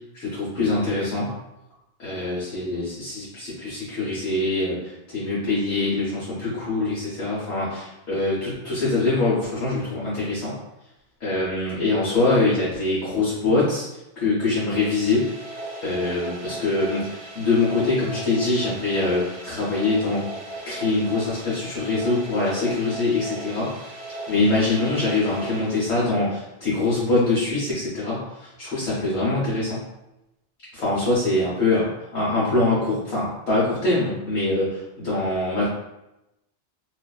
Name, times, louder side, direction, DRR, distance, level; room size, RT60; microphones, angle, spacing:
voice 1, 0.1-1.3 2.0-10.6 11.2-13.8 14.2-15.3 15.8-20.3 20.7-23.7 24.3-29.8 30.7-35.7, left 2 dB, 75° left, -8 dB, 1.0 m, -24 dB
sound 1, 14.4-26.4, right 2 dB, 45° right, 0.7 m, -37 dB
2.4 x 2.2 x 2.2 m, 0.91 s
omnidirectional pair, 1.1 m